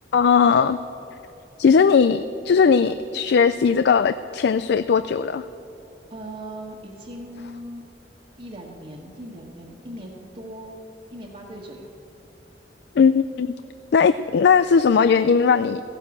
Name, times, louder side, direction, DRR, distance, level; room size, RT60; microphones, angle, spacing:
voice 1, 0.1-0.8 1.6-5.4 13.0-13.5 13.9-15.8, left 6 dB, 65° left, 13 dB, 0.4 m, -18 dB
voice 2, 6.1-7.8 8.4-10.8 11.1-11.9, right 1 dB, 40° right, -4 dB, 1.5 m, -39 dB
15.5 x 11.5 x 7.2 m, 2.8 s
head